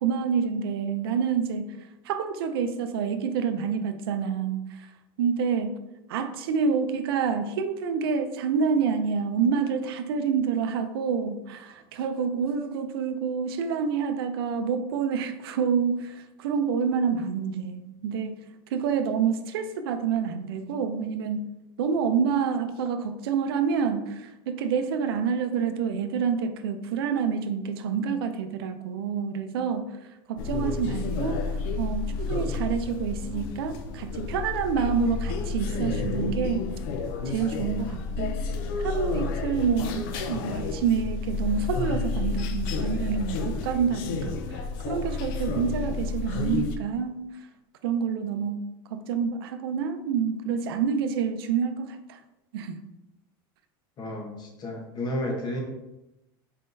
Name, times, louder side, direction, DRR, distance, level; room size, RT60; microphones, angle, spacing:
voice 1, 0.0-1.7 2.1-4.6 5.2-5.8 6.1-18.4 18.7-21.5 21.8-29.9 30.3-31.4 31.8-36.6 37.3-38.4 38.8-44.3 44.9-47.2 47.8-48.6 48.9-52.2 52.5-52.8, right 6 dB, 90° right, 8 dB, 0.4 m, -27 dB
sound 1, 30.4-46.8, left 4 dB, 70° left, 0.4 m, -30 dB
voice 2, 54.0-55.6, left 1 dB, 35° left, 1 dB, 1.1 m, -32 dB
4.3 x 3.6 x 2.6 m, 0.93 s
supercardioid pair, 125°, 12 cm